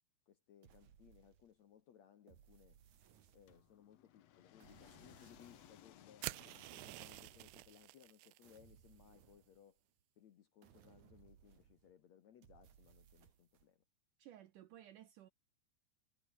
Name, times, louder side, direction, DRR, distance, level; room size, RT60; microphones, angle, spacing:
voice 1, 0.3-2.8 3.3-9.8 10.2-13.8, left 9 dB, 60° left, 1.9 m, -64 dB
sound 1, 0.6-1.7 2.3-3.9 4.6-5.9 6.8-8.1 8.4-10.0 10.6-12.0 12.4-13.7, right 9 dB, 55° right, 3.0 m, -66 dB
sound 2, 3.5-7.9, left 12 dB, 75° left, 1.5 m, -63 dB
sound 3, 6.2-8.4, right 22 dB, 85° right, 2.6 m, -48 dB
voice 2, 14.2-15.3, right 12 dB, 70° right, 2.1 m, -57 dB
omnidirectional pair, 4.7 m